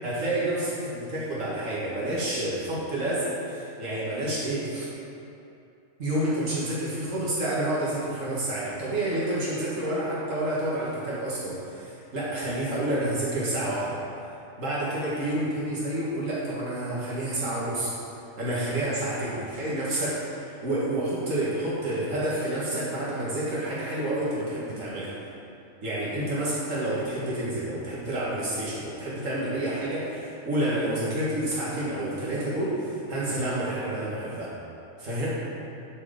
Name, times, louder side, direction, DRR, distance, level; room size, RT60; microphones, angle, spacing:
voice 1, 0.0-4.9 6.0-14.0 14.6-17.9 18.4-25.1 25.8-34.5 35.0-35.4, right 1 dB, 80° right, -8 dB, 2.0 m, -29 dB
11.0 x 4.6 x 5.0 m, 2.7 s
omnidirectional pair, 1.3 m